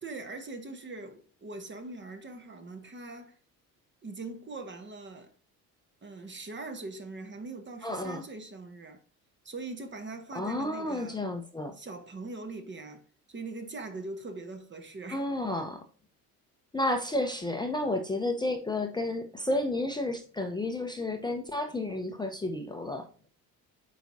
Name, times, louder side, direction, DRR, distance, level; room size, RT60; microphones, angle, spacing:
voice 1, 0.0-3.4 4.0-5.3 6.0-9.0 9.4-11.2 11.7-13.0 13.3-15.3, right 3 dB, 25° right, 1.1 m, -41 dB
voice 2, 7.8-8.2 10.3-11.8 15.1-15.8 16.7-23.1, left 1 dB, 10° left, 0.8 m, -31 dB
9.0 x 4.0 x 2.7 m
figure-of-eight pair, 55°, 47 cm